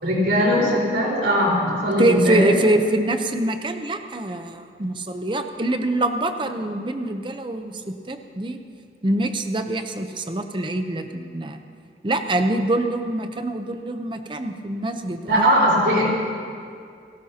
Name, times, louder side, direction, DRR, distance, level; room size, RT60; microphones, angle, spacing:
voice 1, 0.0-2.5 15.3-16.0, equal, 85° right, -4 dB, 4.6 m, -19 dB
voice 2, 2.0-8.6 9.0-11.6 12.0-15.5, right 2 dB, 30° right, 7 dB, 0.7 m, -24 dB
29.5 x 12.5 x 2.9 m, 2.3 s
head